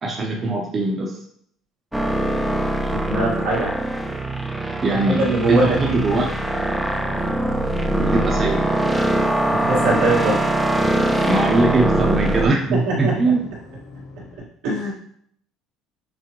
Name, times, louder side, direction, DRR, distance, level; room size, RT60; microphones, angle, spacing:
voice 1, 0.0-1.2 4.8-6.3 8.0-8.7 11.2-13.5, right 2 dB, 35° right, -1 dB, 0.8 m, -21 dB
sound 1, 1.9-12.5, right 1 dB, 5° right, 0.4 m, -22 dB
voice 2, 2.9-3.7 5.1-6.2 9.5-10.4 12.9-13.1 14.6-14.9, right 2 dB, 85° right, -6 dB, 1.7 m, -22 dB
sound 2, 6.4-14.4, left 3 dB, 70° left, 0.8 m, -38 dB
6.1 x 2.2 x 3.0 m, 0.66 s
cardioid pair, 105°, 0 cm